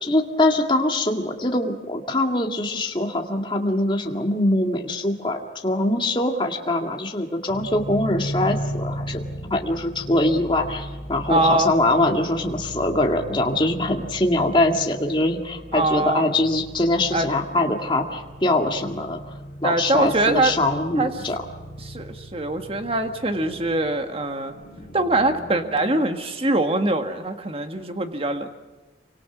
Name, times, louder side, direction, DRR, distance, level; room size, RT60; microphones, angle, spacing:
voice 1, 0.0-9.2 9.5-19.2 19.6-21.4, left 1 dB, 25° left, 2 dB, 2.0 m, -23 dB
sound 1, 7.5-26.0, equal, 60° left, 6.1 m, -37 dB
voice 2, 11.3-11.7 15.7-16.3 17.1-17.3 19.6-20.5 21.0-21.1 21.8-24.5 24.9-28.5, right 2 dB, 30° right, 6 dB, 1.7 m, -23 dB
29.0 x 25.0 x 6.2 m, 1.2 s
head